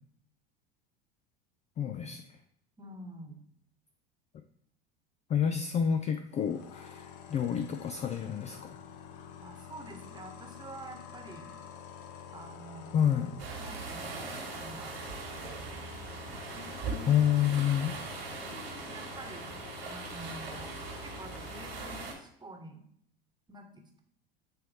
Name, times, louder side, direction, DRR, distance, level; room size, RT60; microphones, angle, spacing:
voice 1, 1.8-2.4 5.3-8.7 12.9-13.3 17.1-17.9, left 9 dB, 25° left, 8 dB, 0.3 m, -29 dB
voice 2, 2.8-3.5 9.4-11.5 12.3-13.0 13.6-15.9 16.5-17.1 18.4-19.5 19.8-20.7 21.0-22.8 23.5-24.0, right 1 dB, 15° right, 3 dB, 1.2 m, -48 dB
sound 1, 6.3-22.1, left 8 dB, 55° left, 0.8 m, -48 dB
sound 2, 13.4-22.1, right 4 dB, 85° right, 2.0 m, -41 dB
8.5 x 3.2 x 3.5 m, 0.65 s
hypercardioid pair, 80°, 29 cm